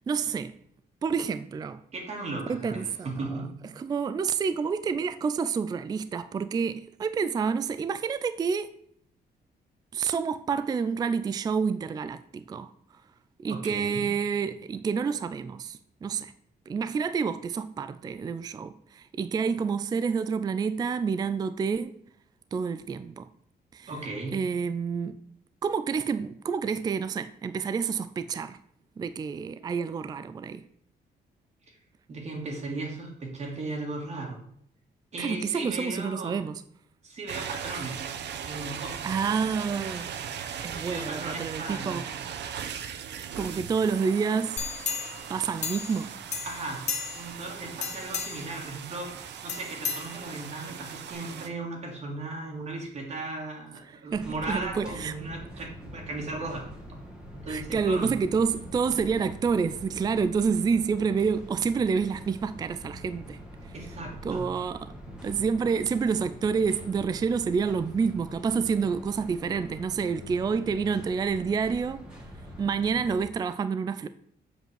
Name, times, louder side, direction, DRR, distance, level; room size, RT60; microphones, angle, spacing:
voice 1, 0.1-0.6 1.0-1.8 2.5-3.4 3.8-8.7 9.9-12.7 13.4-16.3 16.7-21.9 22.5-23.3 23.7-23.9 24.3-25.2 25.6-28.6 29.0-30.7 35.2-36.6 39.0-40.1 40.6-42.1 43.4-44.6 44.9-46.1 48.0-48.1 54.1-55.1 57.5-63.7 64.2-64.9 65.2-72.1 72.6-74.1, right 5 dB, 20° right, 0.3 m, -28 dB
voice 2, 1.9-3.7 13.5-14.1 23.9-24.4 32.1-34.4 35.1-36.4 37.0-38.2 38.5-39.1 40.9-42.0 46.4-46.8 47.1-56.7 57.3-58.1 63.7-64.5, right 2 dB, 40° right, 2.2 m, -36 dB
sound 1, 37.3-51.5, right 8 dB, 80° right, 1.0 m, -39 dB
sound 2, 44.6-46.0 46.3-47.4 47.8-48.6 49.5-50.6 51.1-51.2, left 6 dB, 40° left, 1.0 m, -34 dB
sound 3, 54.1-73.3, equal, 5° right, 1.7 m, -44 dB
7.6 x 5.5 x 7.5 m
wide cardioid pair, 180°, 18 cm